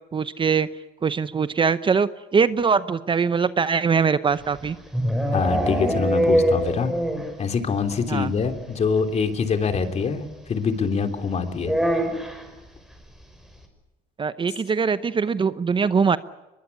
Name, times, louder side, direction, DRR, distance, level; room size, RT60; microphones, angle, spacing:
voice 1, 0.1-0.7 1.0-4.8 8.1-8.3 14.2-16.2, right 5 dB, 30° right, 14 dB, 0.8 m, -22 dB
sound 1, 4.4-7.4 7.7-7.8 8.1-8.2 8.4-8.6 9.8-9.9 11.6-12.5, equal, 5° right, 5.8 m, -23 dB
voice 2, 5.3-6.9 7.4-10.2 10.5-11.8, left 5 dB, 40° left, 7 dB, 3.2 m, -24 dB
23.0 x 22.0 x 9.8 m, 1.1 s
cardioid pair, 110°, 17 cm